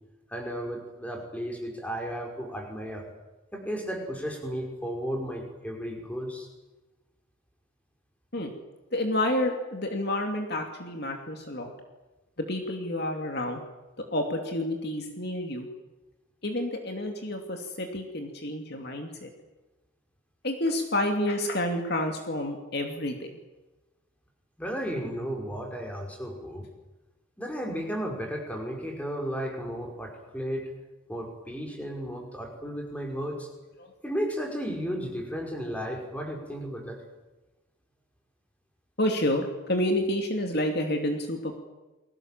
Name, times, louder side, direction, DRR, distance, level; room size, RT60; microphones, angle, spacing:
voice 1, 0.3-3.0 3.5-6.5 24.6-26.7 27.4-30.7 31.1-33.5 34.0-37.0, equal, 5° left, 1 dB, 5.4 m, -34 dB
voice 2, 8.9-11.7 12.4-13.6 14.0-15.7 16.4-19.3 20.4-23.3 33.8-33.9 39.0-41.6, left 1 dB, 50° left, 3 dB, 2.9 m, -29 dB
30.0 x 22.5 x 7.6 m, 1.1 s
head